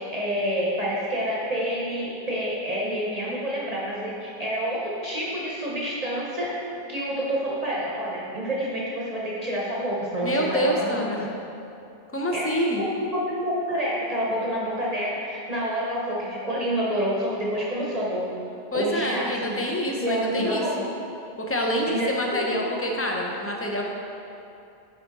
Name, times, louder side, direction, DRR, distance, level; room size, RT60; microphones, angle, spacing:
voice 1, 0.1-6.5 6.9-11.3 12.3-18.3 18.7-19.5 19.9-20.7 21.9-22.4, equal, 40° right, -5 dB, 0.9 m, -28 dB
voice 2, 10.2-11.3 12.1-12.8 18.7-20.6 21.4-23.9, equal, 20° left, -1 dB, 0.4 m, -26 dB
6.1 x 4.7 x 4.1 m, 2.7 s
omnidirectional pair, 1.1 m